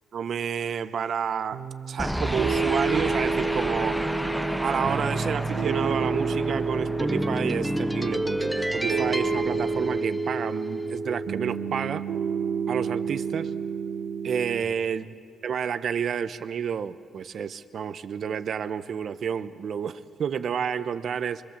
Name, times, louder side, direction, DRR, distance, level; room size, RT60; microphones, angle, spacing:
voice 1, 0.1-1.6 1.9-4.0 4.6-12.0 12.7-13.5 14.2-15.1 15.4-21.4, right 7 dB, 55° right, 12 dB, 0.9 m, -30 dB
Piano, 1.5-14.6, right 4 dB, 80° right, 1.7 m, -29 dB
sound 1, 2.0-10.5, equal, ahead, 0.8 m, -30 dB
25.0 x 22.5 x 7.4 m, 2.3 s
cardioid pair, 90°, 0 cm